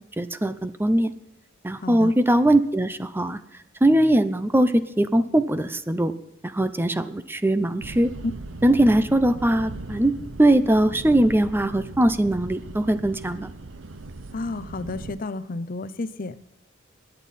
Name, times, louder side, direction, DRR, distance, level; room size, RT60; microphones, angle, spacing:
voice 1, 0.2-1.1 1.6-3.4 3.8-6.1 6.4-8.1 8.6-13.5, right 1 dB, 10° right, 12 dB, 0.6 m, -21 dB
voice 2, 1.8-2.1 14.3-16.3, left 2 dB, 45° left, 14 dB, 0.7 m, -32 dB
sound 1, 7.8-15.2, right 2 dB, 70° right, 0.8 m, -38 dB
21.5 x 9.0 x 4.2 m, 0.84 s
head